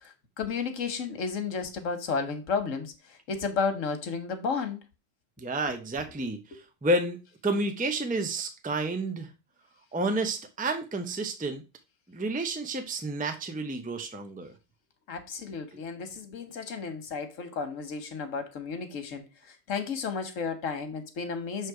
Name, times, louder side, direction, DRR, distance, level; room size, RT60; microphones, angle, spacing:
voice 1, 0.0-4.8 6.5-6.6 15.1-21.7, left 5 dB, 80° left, 1.5 m, -33 dB
voice 2, 5.4-6.4 6.8-9.3 9.9-11.6 12.1-14.5 15.7-15.8, right 2 dB, 10° right, 0.6 m, -30 dB
6.5 x 3.2 x 4.6 m
omnidirectional pair, 1.3 m